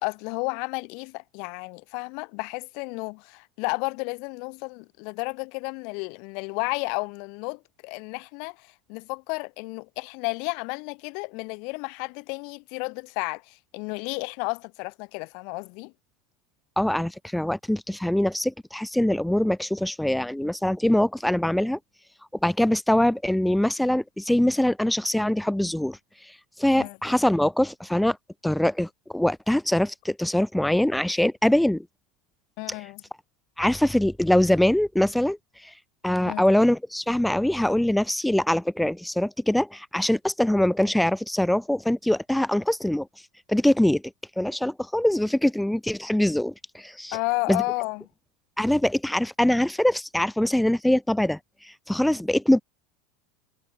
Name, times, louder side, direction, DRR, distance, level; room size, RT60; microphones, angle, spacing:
voice 1, 0.0-15.9 26.8-27.0 32.6-33.0 36.3-36.4 47.1-48.1, left 34 dB, 60° left, 0.7 m, -32 dB
voice 2, 16.8-21.8 22.4-28.2 28.4-31.9 33.6-35.7 36.0-43.1 43.5-44.0 44.4-47.2 47.5-47.6 48.6-52.6, left 1 dB, 5° left, 0.4 m, -23 dB
supercardioid pair, 130°, 0 cm